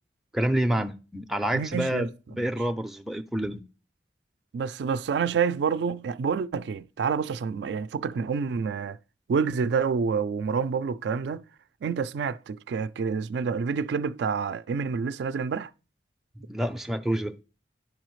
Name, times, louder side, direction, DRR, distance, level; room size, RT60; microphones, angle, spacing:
voice 1, 0.3-3.6 16.5-17.3, equal, ahead, 0.4 m, -28 dB
voice 2, 1.5-2.1 2.4-2.5 4.5-9.0 9.3-11.4 11.8-15.7, right 6 dB, 80° right, 0.3 m, -28 dB
10.5 x 4.8 x 3.0 m
head